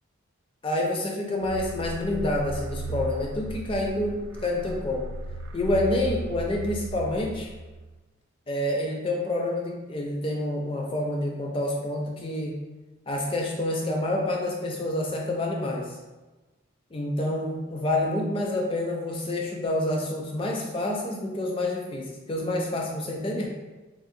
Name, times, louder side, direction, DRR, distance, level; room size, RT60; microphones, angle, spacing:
voice 1, 0.6-5.1 5.5-7.5 8.5-12.7 13.1-16.0 16.9-23.5, left 1 dB, 25° left, 0 dB, 0.4 m, -28 dB
sound 1, 1.4-7.9, right 2 dB, 75° right, 0.3 m, -36 dB
3.6 x 2.0 x 2.5 m, 1.2 s
head